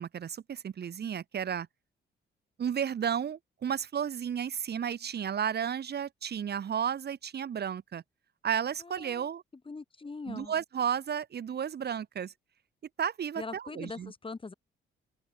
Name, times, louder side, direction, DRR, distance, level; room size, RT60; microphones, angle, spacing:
voice 1, 0.0-1.7 2.6-8.0 8.4-9.4 10.3-12.3 13.0-14.1, right 8 dB, 55° right, 3.5 m, -33 dB
voice 2, 8.8-9.3 9.7-10.5 13.4-14.5, left 3 dB, 25° left, 7.7 m, -42 dB
open air
cardioid pair, 90°, 20 cm